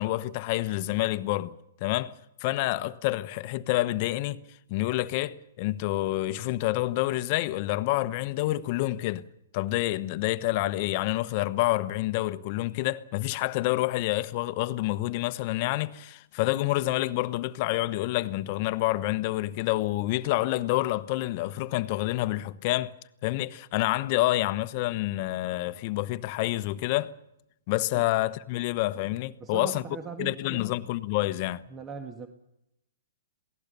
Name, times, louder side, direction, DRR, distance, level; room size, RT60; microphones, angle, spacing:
voice 1, 0.0-1.5 1.8-2.1 2.4-4.4 4.7-9.2 9.5-22.9 23.2-27.1 27.7-29.8 30.2-31.6, left 17 dB, 40° left, 1.1 m, -28 dB
voice 2, 29.4-30.7 31.7-32.3, right 6 dB, 20° right, 1.7 m, -39 dB
27.5 x 18.0 x 7.0 m
hypercardioid pair, 135°, 0 cm